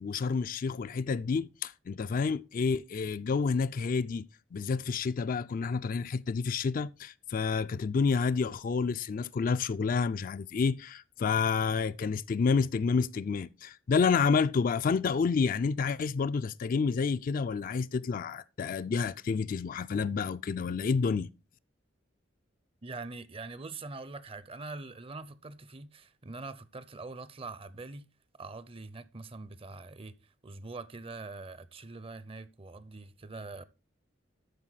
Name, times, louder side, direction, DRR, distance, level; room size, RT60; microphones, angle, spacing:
voice 1, 0.0-21.3, left 5 dB, 45° left, 0.3 m, -29 dB
voice 2, 22.8-28.1 28.4-30.2 30.4-33.6, right 3 dB, 30° right, 0.6 m, -43 dB
13.0 x 4.8 x 4.0 m
head